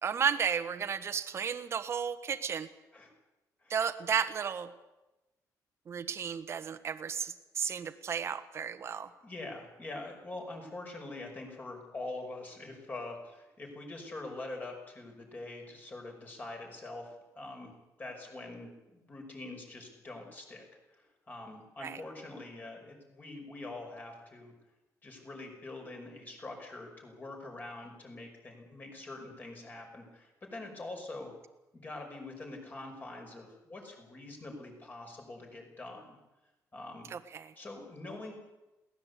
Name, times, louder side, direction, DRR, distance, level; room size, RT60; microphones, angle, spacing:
voice 1, 0.0-2.7 3.7-4.7 5.9-9.1 21.8-22.0 37.1-37.5, right 7 dB, 40° right, 10 dB, 1.4 m, -33 dB
voice 2, 9.2-20.7 20.9-24.5 25.0-31.3 31.7-36.2 36.7-37.1 37.6-38.3, left 2 dB, 25° left, 2 dB, 5.7 m, -44 dB
22.0 x 18.0 x 8.4 m, 1.0 s
cardioid pair, 155°, 7 cm